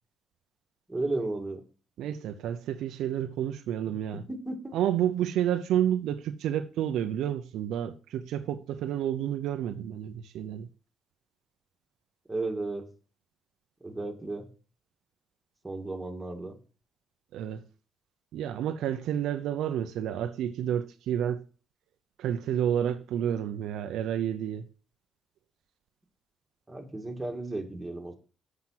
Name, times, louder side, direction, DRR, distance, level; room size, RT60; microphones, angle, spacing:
voice 1, 0.9-1.6 4.3-4.7 12.3-12.9 13.8-14.5 15.6-16.6 26.7-28.1, right 2 dB, 15° right, 2.2 m, -34 dB
voice 2, 2.0-4.2 4.7-10.7 17.3-17.6 18.3-21.4 22.2-24.6, right 10 dB, 85° right, 0.6 m, -30 dB
7.7 x 5.9 x 5.8 m
cardioid pair, 90°, 0 cm